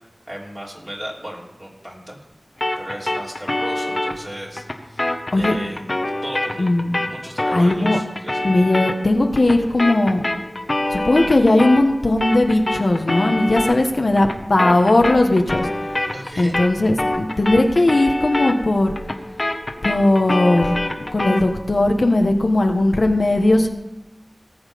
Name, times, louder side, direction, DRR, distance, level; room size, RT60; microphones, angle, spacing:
voice 1, 0.3-2.2 2.8-5.8 6.2-6.7 7.1-8.5 16.1-16.6, equal, 35° right, -4 dB, 3.6 m, -35 dB
sound 1, 2.6-11.9 12.2-21.5, left 1 dB, 40° left, 1.2 m, -26 dB
voice 2, 6.6-6.9 7.5-8.0 8.4-10.2 10.9-15.7 16.4-18.9 19.8-20.8 21.1-23.7, left 2 dB, 65° left, 3 dB, 1.3 m, -17 dB
18.5 x 7.3 x 5.2 m, 1.1 s
wide cardioid pair, 60°, 0 cm